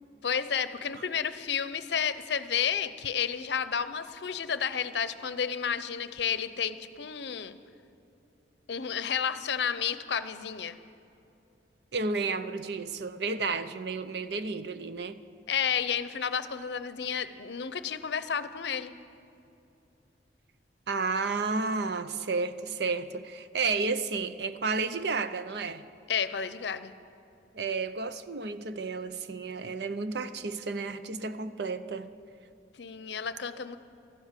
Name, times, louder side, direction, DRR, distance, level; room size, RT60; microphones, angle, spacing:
voice 1, 0.2-7.6 8.7-10.8 15.5-18.9 26.1-26.9 32.8-33.8, left 7 dB, 70° left, 0.6 m, -31 dB
voice 2, 11.9-15.2 20.9-25.8 27.5-32.1, right 4 dB, 65° right, 0.6 m, -32 dB
14.0 x 12.5 x 8.2 m
head